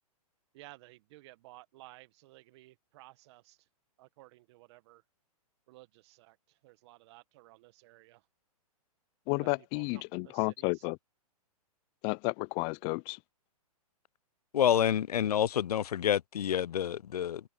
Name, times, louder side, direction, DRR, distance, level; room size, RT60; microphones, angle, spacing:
voice 1, 0.5-3.6 4.0-5.0 5.7-8.2 9.4-10.9, right 19 dB, 45° right, 1.2 m, -55 dB
voice 2, 9.3-11.0 12.0-13.2, left 33 dB, 25° left, 0.3 m, -32 dB
voice 3, 14.5-17.4, left 10 dB, 80° left, 0.5 m, -28 dB
hypercardioid pair, 130°, 20 cm